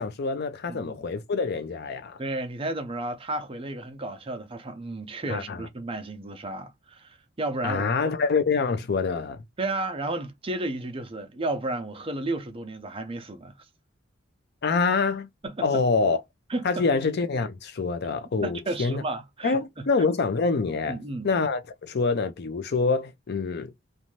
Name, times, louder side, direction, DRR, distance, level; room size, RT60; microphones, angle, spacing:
voice 1, 0.0-2.2 5.3-5.7 7.6-9.4 14.6-15.3 15.6-16.2 16.6-19.0 19.4-21.0 21.2-23.7, left 4 dB, 55° left, 0.5 m, -26 dB
voice 2, 0.7-1.0 2.2-7.9 9.6-13.5 15.4-15.6 16.5-16.8 18.4-19.9 20.9-21.3, right 2 dB, 30° right, 0.5 m, -32 dB
2.6 x 2.2 x 3.0 m
head